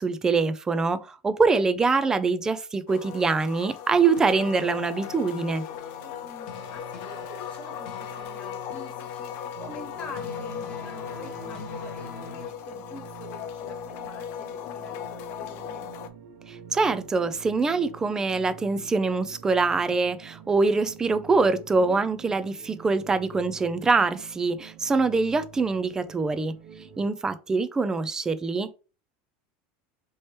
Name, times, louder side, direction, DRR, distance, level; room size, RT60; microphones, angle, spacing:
voice 1, 0.0-5.6 16.5-26.5 27.0-28.7, right 4 dB, 10° right, 0.3 m, -24 dB
sound 1, 2.9-16.1, left 9 dB, 50° left, 0.4 m, -38 dB
sound 2, 4.0-12.5, left 4 dB, 85° left, 1.0 m, -41 dB
voice 2, 6.2-16.1 21.7-22.0, left 3 dB, 25° left, 1.4 m, -46 dB
sound 3, 9.5-27.1, right 8 dB, 60° right, 0.9 m, -47 dB
3.1 x 3.0 x 4.3 m
supercardioid pair, 155°, 5 cm